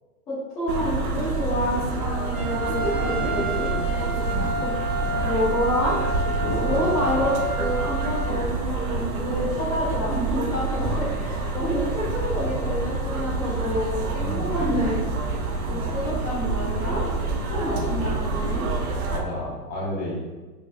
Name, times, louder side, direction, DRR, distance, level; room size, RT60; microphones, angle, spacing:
voice 1, 0.3-3.7 4.6-4.7 5.2-5.9 6.6-15.0 15.7-17.0 17.5-18.7, equal, 10° left, -11 dB, 0.4 m, -28 dB
sound 1, 0.7-19.2, right 3 dB, 70° right, 0.7 m, -27 dB
Trumpet, 2.3-8.4, right 1 dB, 35° right, 1.0 m, -30 dB
voice 2, 4.3-4.6 6.4-7.4 10.8-11.2 14.2-14.7 15.7-16.0 17.8-18.3 19.1-20.1, left 1 dB, 40° left, -5 dB, 1.4 m, -32 dB
4.1 x 3.0 x 2.4 m, 1.3 s
hypercardioid pair, 135°, 44 cm